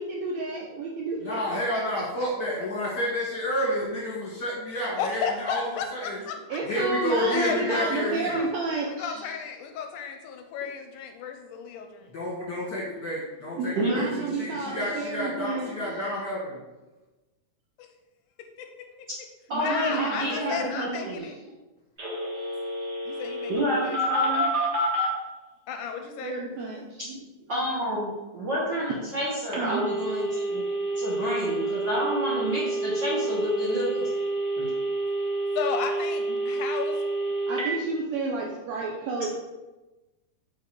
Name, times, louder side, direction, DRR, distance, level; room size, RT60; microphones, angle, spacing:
voice 1, 0.0-2.0 6.5-9.3 13.6-16.0 19.5-21.4 26.2-27.3 28.9-29.0 29.6-29.8 30.3-30.5 30.9-31.0 37.5-39.4, right 3 dB, 75° right, -1 dB, 1.6 m, -31 dB
voice 2, 1.2-5.6 5.9-6.2 6.6-8.3 12.1-14.1 14.3-16.6, left 1 dB, 45° left, -5 dB, 1.5 m, -30 dB
voice 3, 4.9-6.6 7.3-8.5 8.9-12.1 17.8-17.9 18.6-18.7 19.6-21.4 23.1-24.0 25.7-26.3 35.6-37.0, left 6 dB, 80° left, 5 dB, 2.0 m, -33 dB
voice 4, 19.5-21.2 23.5-24.5 27.5-30.6 31.0-34.1 34.6-34.7, equal, 55° right, -6 dB, 1.3 m, -29 dB
Telephone, 22.0-25.1 29.5-37.7, right 1 dB, 35° right, 1.2 m, -29 dB
6.7 x 4.6 x 4.8 m, 1.1 s
omnidirectional pair, 3.8 m